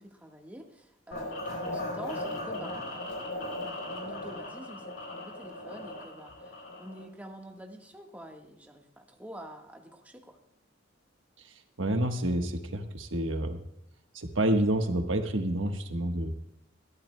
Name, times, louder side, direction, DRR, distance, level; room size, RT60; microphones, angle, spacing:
voice 1, 0.0-6.5 6.8-10.4, right 1 dB, 10° right, 1 dB, 1.4 m, -47 dB
sound 1, 1.1-7.1, left 1 dB, 70° left, 3.9 m, -37 dB
voice 2, 11.8-13.6 14.1-16.3, right 1 dB, 80° right, 5 dB, 1.3 m, -28 dB
21.0 x 14.0 x 2.2 m, 0.78 s
head